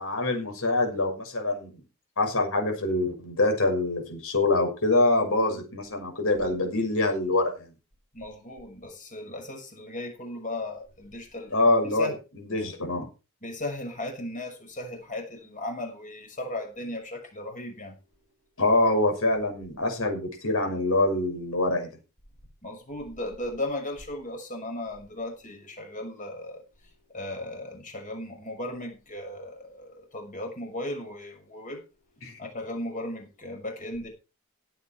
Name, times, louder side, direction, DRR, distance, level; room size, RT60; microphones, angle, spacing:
voice 1, 0.0-1.8 2.2-7.7 11.5-13.1 18.6-21.9 32.2-32.3, left 2 dB, 65° left, 6.3 m, -25 dB
voice 2, 8.1-12.1 13.4-17.9 22.6-31.8 32.4-34.1, left 1 dB, 35° left, 6.3 m, -36 dB
17.0 x 8.5 x 4.8 m
head